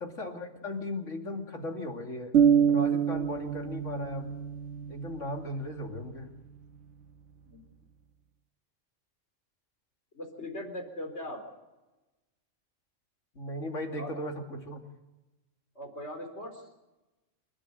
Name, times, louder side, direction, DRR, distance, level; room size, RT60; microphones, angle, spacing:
voice 1, 0.0-2.3 2.7-4.3 4.9-6.3 13.3-14.8, left 1 dB, 80° left, 3 dB, 3.0 m, -37 dB
sound 1, 2.3-6.1, right 8 dB, 75° right, 1.4 m, -27 dB
voice 2, 10.1-11.4 13.9-14.2 15.7-16.6, left 1 dB, 60° left, 4 dB, 4.5 m, -40 dB
28.5 x 12.5 x 7.8 m, 1.1 s
omnidirectional pair, 1.3 m